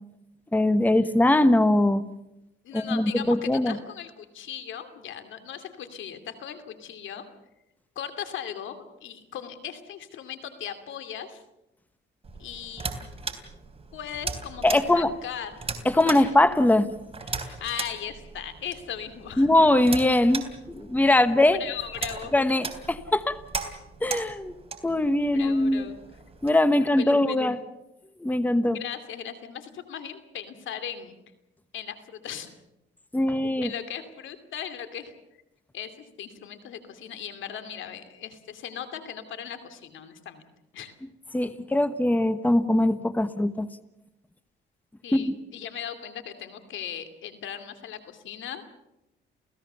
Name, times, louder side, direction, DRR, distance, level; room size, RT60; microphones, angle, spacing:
voice 1, 0.5-2.0 2.7-3.8 14.6-15.1 15.8-16.9 19.4-21.6 22.3-23.4 24.0-24.5 24.8-25.9 26.4-27.6 28.2-28.8 33.1-33.7 41.3-43.7 45.1-45.4, left 1 dB, 10° left, 12 dB, 1.1 m, -21 dB
voice 2, 2.6-7.3 8.0-11.4 12.4-12.9 13.9-15.5 16.1-16.3 17.3-19.5 21.6-22.3 25.3-26.0 26.7-27.4 28.7-31.1 31.7-32.5 33.4-35.1 35.7-35.9 36.2-40.4 40.7-40.9 45.0-48.6, left 9 dB, 75° left, 9 dB, 2.7 m, -38 dB
sound 1, 12.2-26.5, right 4 dB, 30° right, 3.5 m, -38 dB
28.5 x 17.0 x 6.9 m, 0.91 s
cardioid pair, 90°, 20 cm